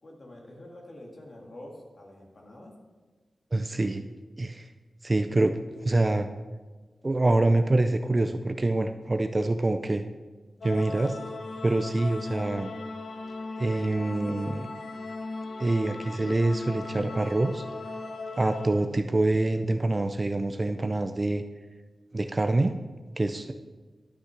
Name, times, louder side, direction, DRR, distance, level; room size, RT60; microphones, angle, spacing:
voice 1, 0.0-2.7, left 1 dB, 40° left, -1 dB, 2.0 m, -46 dB
voice 2, 3.5-4.0 4.4-4.7 5.0-5.5 5.9-6.3 7.0-10.0 10.6-11.2 11.6-12.7 13.6-14.7 15.6-17.6 18.4-21.4 22.1-22.7 23.2-23.5, right 2 dB, 25° right, 8 dB, 0.4 m, -25 dB
sound 1, 10.6-18.7, left 3 dB, 65° left, 0.8 m, -38 dB
12.0 x 5.9 x 5.8 m, 1.3 s
wide cardioid pair, 165°, 0 cm